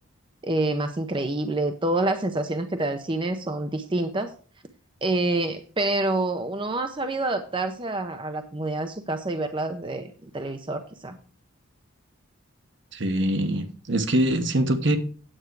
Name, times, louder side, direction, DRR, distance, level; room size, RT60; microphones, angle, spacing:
voice 1, 0.4-4.3 5.0-11.2, right 2 dB, 25° right, 7 dB, 0.6 m, -27 dB
voice 2, 12.9-15.0, right 1 dB, 60° right, 8 dB, 1.1 m, -23 dB
8.9 x 8.1 x 4.7 m, 0.41 s
head